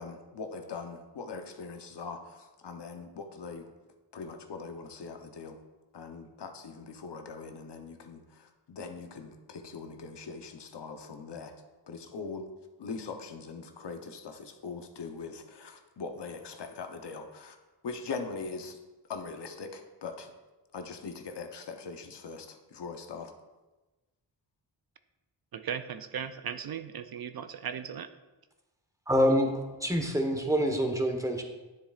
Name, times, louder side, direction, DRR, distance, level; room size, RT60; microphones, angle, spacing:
voice 1, 0.0-3.7 4.1-5.6 5.9-11.5 11.9-12.5 12.8-17.6 17.8-18.8 19.1-20.3 20.7-23.3, left 4 dB, 65° left, 6 dB, 0.9 m, -41 dB
voice 2, 25.5-28.1, right 8 dB, 55° right, 11 dB, 0.5 m, -37 dB
voice 3, 29.1-31.4, equal, 5° right, 3 dB, 1.2 m, -26 dB
9.7 x 7.0 x 2.4 m, 1.1 s
cardioid pair, 60°, 45 cm